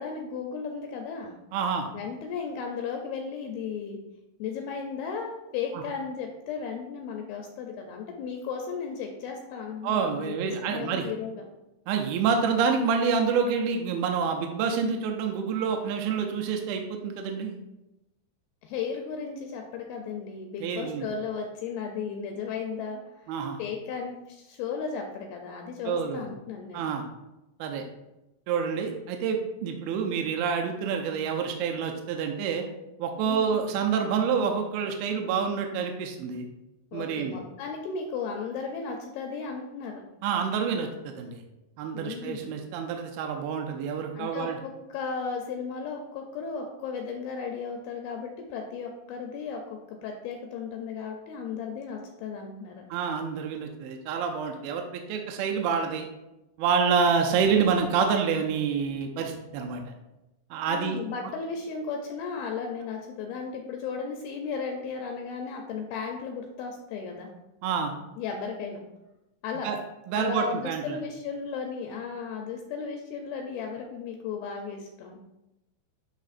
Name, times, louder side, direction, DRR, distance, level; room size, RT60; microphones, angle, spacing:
voice 1, 0.0-1.4 1.9-4.0 4.4-11.4 18.6-26.8 33.2-33.6 36.9-40.0 41.9-42.6 44.2-52.8 60.7-67.3 68.2-68.8 69.4-69.7 70.1-75.2, left 5 dB, 80° left, 3 dB, 2.3 m, -35 dB
voice 2, 1.5-1.9 5.7-5.8 9.8-11.1 11.9-17.6 20.6-21.1 23.3-23.6 25.9-26.3 26.7-27.1 27.6-27.8 28.5-32.7 33.0-36.5 36.9-37.4 40.2-41.4 41.8-44.6 52.9-56.1 56.6-59.8 60.5-61.0 67.6-67.9 69.6-69.8 70.1-71.0, right 6 dB, 80° right, 3 dB, 2.4 m, -27 dB
10.5 x 3.6 x 2.5 m, 0.95 s
omnidirectional pair, 4.6 m